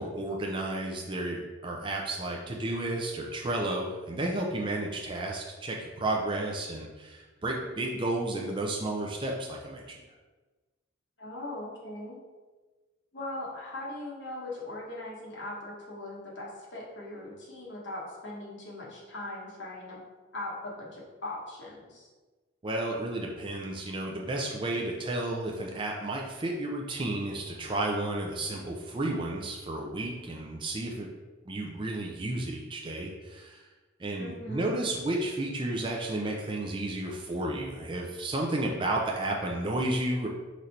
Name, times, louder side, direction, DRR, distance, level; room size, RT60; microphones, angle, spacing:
voice 1, 0.0-10.0 22.6-31.1 31.5-33.7 34.0-40.3, right 2 dB, 25° right, -1 dB, 0.4 m, -32 dB
voice 2, 11.2-12.2 13.1-20.0 20.3-22.1 34.2-34.8, left 1 dB, 60° left, -4 dB, 1.2 m, -40 dB
3.9 x 3.2 x 4.2 m, 1.3 s
head